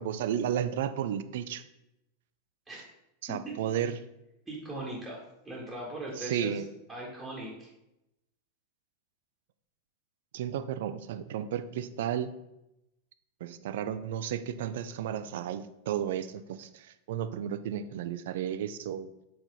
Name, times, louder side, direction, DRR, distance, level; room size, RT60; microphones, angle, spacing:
voice 1, 0.0-1.6 3.2-3.9 6.2-6.7 10.3-12.3 13.4-19.1, right 9 dB, 55° right, 12 dB, 0.4 m, -33 dB
voice 2, 4.5-6.6 6.9-7.7, right 1 dB, 5° right, -5 dB, 1.7 m, -39 dB
4.7 x 4.3 x 5.4 m, 0.88 s
figure-of-eight pair, 90°, 0 cm